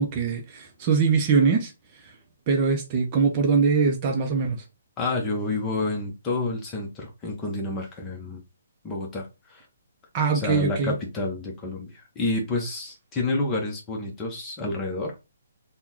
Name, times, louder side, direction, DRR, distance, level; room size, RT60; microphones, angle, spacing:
voice 1, 0.0-1.7 2.5-4.6 10.1-10.9, right 5 dB, 30° right, 0.6 m, -22 dB
voice 2, 5.0-8.4 8.8-9.7 10.3-15.2, left 2 dB, 15° left, 0.9 m, -29 dB
3.6 x 2.2 x 3.0 m
hypercardioid pair, 155°, 0 cm